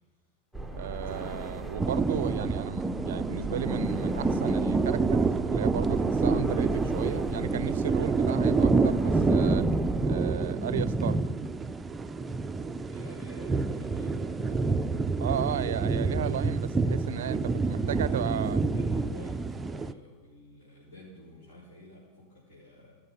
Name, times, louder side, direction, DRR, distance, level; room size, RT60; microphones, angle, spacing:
sound 1, 0.5-10.1, right 1 dB, ahead, 0.8 m, -37 dB
voice 1, 0.7-9.7 10.0-11.2 15.2-18.6, right 10 dB, 90° right, 0.4 m, -35 dB
sound 2, 1.8-19.9, right 3 dB, 15° right, 0.4 m, -27 dB
voice 2, 12.8-14.8 15.2-15.8 17.6-23.0, left 1 dB, 70° left, 4.1 m, -50 dB
14.0 x 6.6 x 5.5 m
supercardioid pair, 135°, 0 cm